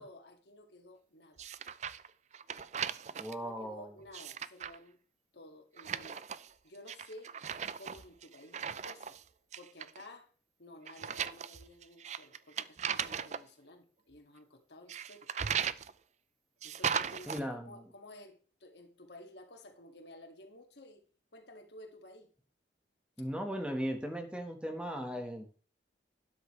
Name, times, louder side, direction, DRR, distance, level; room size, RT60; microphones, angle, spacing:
voice 1, 0.0-1.5 3.4-5.0 5.3-6.3 6.6-7.3 7.8-9.2 9.6-10.3 10.6-15.3 16.6-21.0 21.3-22.3, left 1 dB, 75° left, 2.1 m, -53 dB
sound 1, 1.4-2.1 2.3-3.3 4.0-4.8 5.8-6.5 6.9-9.2 9.5-10.0 10.9-13.4 14.9-15.9 16.6-17.4, right 7 dB, 40° right, 0.4 m, -37 dB
voice 2, 3.2-3.9 17.3-17.8 23.2-25.5, equal, 5° right, 1.4 m, -37 dB
12.5 x 9.8 x 3.2 m
head